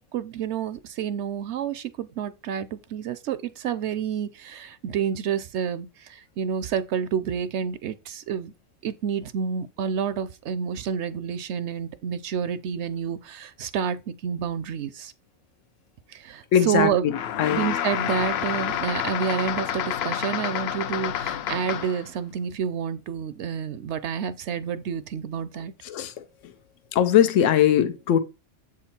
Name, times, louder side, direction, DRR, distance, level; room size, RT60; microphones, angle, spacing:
voice 1, 0.0-8.5 8.8-15.1 16.1-17.1 17.5-25.7, right 7 dB, 70° right, 0.8 m, -29 dB
voice 2, 16.5-17.6 25.8-26.5 26.9-28.2, left 10 dB, 85° left, 1.0 m, -21 dB
sound 1, 17.1-22.1, left 10 dB, 65° left, 0.7 m, -29 dB
7.5 x 3.8 x 4.3 m
omnidirectional pair, 1.3 m